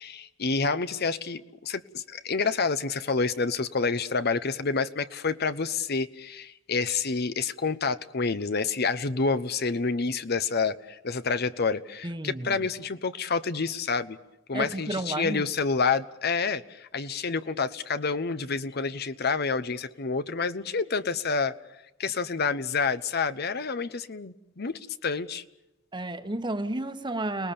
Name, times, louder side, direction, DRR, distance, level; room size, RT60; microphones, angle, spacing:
voice 1, 0.0-14.2 14.5-21.5 22.0-25.4, left 4 dB, 55° left, 12 dB, 0.9 m, -28 dB
voice 2, 12.0-12.7 14.5-15.5 25.9-27.5, right 1 dB, 25° right, 9 dB, 1.3 m, -32 dB
29.5 x 19.5 x 7.0 m, 0.96 s
head